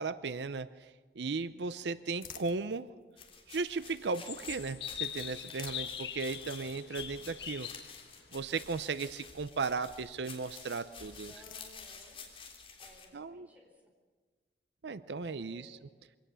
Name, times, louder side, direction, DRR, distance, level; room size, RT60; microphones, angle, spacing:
voice 1, 0.0-2.9 3.5-7.7 8.3-11.3 13.1-13.5 14.8-15.8, right 4 dB, 80° right, 14 dB, 0.6 m, -36 dB
sound 1, 1.5-4.4 5.2-9.8 10.8-12.3, left 9 dB, 50° left, 1.5 m, -57 dB
sound 2, 3.2-13.1, left 5 dB, 30° left, 3.6 m, -50 dB
sound 3, 4.2-9.3, left 9 dB, 80° left, 1.6 m, -42 dB
voice 2, 11.2-12.2 12.8-13.9 15.5-15.9, equal, 10° right, 0 dB, 4.4 m, -59 dB
24.0 x 17.5 x 6.9 m, 1.4 s
head